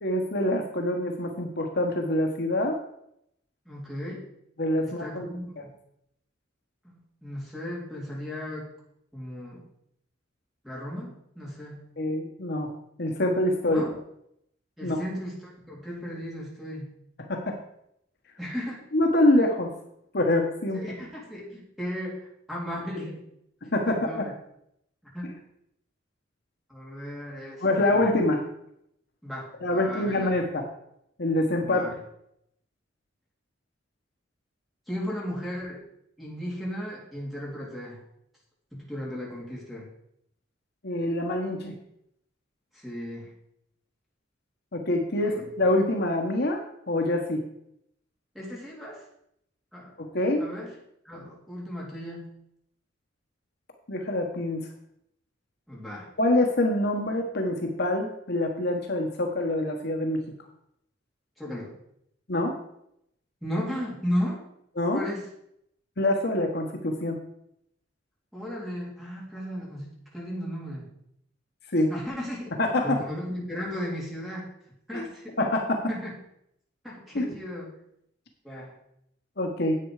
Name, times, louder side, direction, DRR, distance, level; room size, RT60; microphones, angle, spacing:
voice 1, 0.0-2.8 4.6-5.3 5.6-5.7 12.0-12.7 13.0-13.8 14.8-15.0 17.2-17.6 18.9-19.7 20.1-20.8 23.7-24.3 27.6-28.4 29.6-30.6 31.2-31.9 40.8-41.7 44.7-47.4 50.0-50.4 53.9-54.6 56.2-60.2 62.3-62.6 64.8-65.0 66.0-67.2 71.7-71.9 72.6-73.0 74.9-75.0 75.4-75.8 77.1-77.3 79.4-79.8, left 1 dB, 55° left, 3 dB, 1.3 m, -25 dB
voice 2, 3.7-4.2 4.8-5.7 6.8-8.7 9.1-9.6 10.6-11.9 13.7-13.9 14.8-16.9 18.4-18.8 20.7-22.2 22.5-23.2 23.9-24.3 25.1-25.3 26.7-28.0 29.2-30.3 31.6-32.0 34.9-35.8 36.2-38.0 38.7-39.9 42.7-43.3 45.2-45.4 48.3-49.1 49.7-49.9 50.4-50.7 51.0-52.3 55.7-56.1 61.4-61.7 63.4-64.4 64.9-65.3 68.3-70.9 71.9-72.5 72.8-74.5 74.9-75.3 75.9-76.1 76.8-77.7 78.4-78.7, equal, ahead, -5 dB, 3.6 m, -35 dB
10.0 x 8.4 x 4.9 m, 0.75 s
head